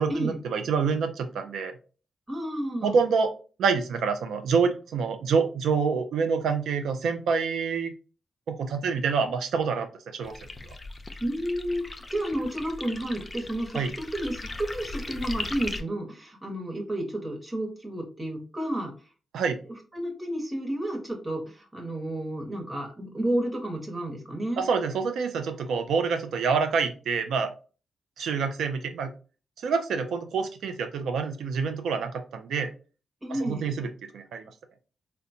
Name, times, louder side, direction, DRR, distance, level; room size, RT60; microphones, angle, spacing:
voice 1, 0.0-1.8 2.8-3.3 3.6-7.9 8.5-10.3 13.7-13.9 19.3-19.6 24.6-27.5 28.2-29.1 29.6-32.7 33.3-34.5, right 5 dB, 80° right, 7 dB, 0.5 m, -27 dB
voice 2, 2.3-3.0 11.2-18.9 19.9-24.6 33.2-33.7, right 1 dB, 20° right, 1 dB, 1.1 m, -31 dB
sound 1, 10.2-15.8, left 2 dB, 30° left, 0.5 m, -38 dB
3.8 x 2.2 x 2.7 m, 0.36 s
supercardioid pair, 55°, 0 cm